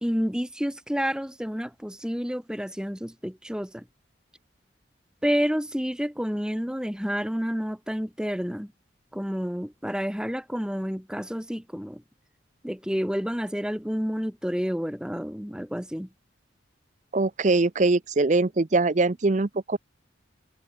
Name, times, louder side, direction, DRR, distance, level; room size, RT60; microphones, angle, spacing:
voice 1, 0.0-3.8 5.2-8.7 9.1-12.0 12.6-16.1, equal, 5° right, 1.9 m, -29 dB
voice 2, 17.1-19.8, right 3 dB, 40° right, 0.6 m, -22 dB
head